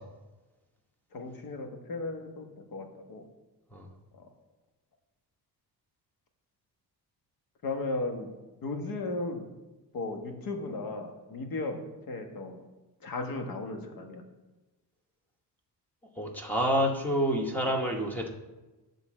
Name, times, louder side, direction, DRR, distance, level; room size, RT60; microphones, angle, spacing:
voice 1, 1.1-2.5 2.7-3.2 4.2-4.3 7.6-8.3 8.6-9.5 9.9-12.6 13.0-14.2, left 2 dB, 60° left, 4 dB, 1.3 m, -35 dB
voice 2, 16.2-18.3, equal, 5° left, 0 dB, 1.1 m, -28 dB
9.6 x 3.9 x 7.3 m, 1.1 s
cardioid pair, 150°, 39 cm